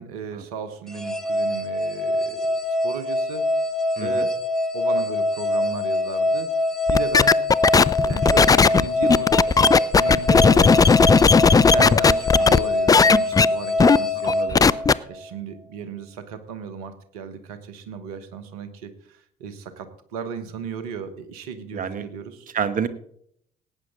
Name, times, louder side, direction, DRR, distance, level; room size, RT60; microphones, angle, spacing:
voice 1, 0.0-3.5 4.0-4.4 4.7-6.5 6.9-7.4 8.0-10.8 11.5-14.7 15.1-22.5, right 6 dB, 70° right, 11 dB, 1.3 m, -35 dB
sound 1, 0.9-15.3, left 2 dB, ahead, 2.1 m, -24 dB
voice 2, 4.0-4.3 11.5-11.8 14.2-14.6 21.7-22.1 22.5-22.9, right 7 dB, 45° right, 13 dB, 1.3 m, -29 dB
sound 2, 6.9-12.6 12.9-13.5 13.8-14.0 14.3-14.9, left 5 dB, 20° left, 0.4 m, -15 dB
18.0 x 9.1 x 3.8 m, 0.65 s
figure-of-eight pair, 50°, 19 cm